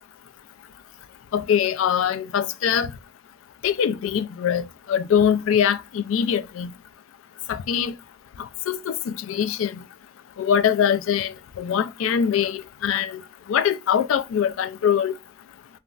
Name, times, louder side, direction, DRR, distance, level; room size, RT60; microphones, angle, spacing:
voice 1, 1.3-2.9 3.6-6.7 7.5-7.9 8.7-9.8 10.4-13.2 13.5-15.1, left 8 dB, 85° left, 0.3 m, -23 dB
3.1 x 2.4 x 2.3 m
head